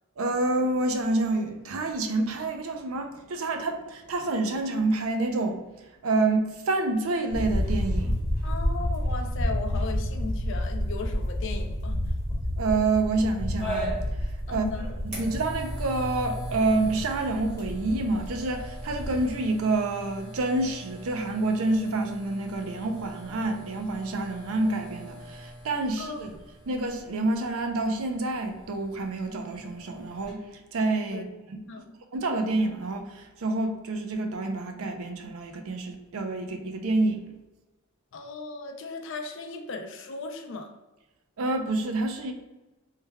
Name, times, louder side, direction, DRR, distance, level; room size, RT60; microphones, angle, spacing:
voice 1, 0.2-5.7 6.0-8.2 12.6-13.9 14.2-14.7 15.0-26.4 26.7-31.9 32.1-37.2 41.4-42.3, right 2 dB, 70° right, 5 dB, 0.5 m, -28 dB
sound 1, 7.3-19.3, left 1 dB, 15° left, 1.0 m, -30 dB
voice 2, 8.4-12.0 14.5-14.9 26.0-26.2 31.1-31.3 31.7-31.9 38.1-40.7, left 3 dB, 55° left, 5 dB, 0.4 m, -36 dB
sound 2, 13.6-30.3, right 1 dB, 30° right, 1.1 m, -41 dB
3.2 x 2.2 x 3.4 m, 1.1 s
head